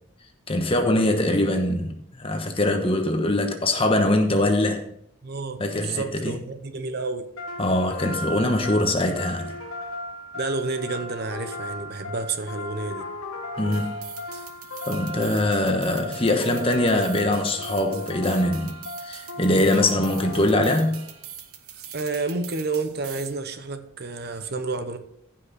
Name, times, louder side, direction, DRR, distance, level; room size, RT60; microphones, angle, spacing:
voice 1, 0.5-4.8 5.6-6.4 7.6-9.5 13.6-13.9 14.9-21.0, left 1 dB, 25° left, 1.2 m, -23 dB
voice 2, 5.2-7.3 10.3-13.1 21.9-25.0, right 3 dB, 50° right, 0.8 m, -30 dB
sound 1, 7.4-21.2, left 1 dB, 75° left, 1.2 m, -36 dB
sound 2, 13.7-23.3, right 9 dB, 85° right, 1.2 m, -43 dB
15.0 x 5.7 x 4.1 m
head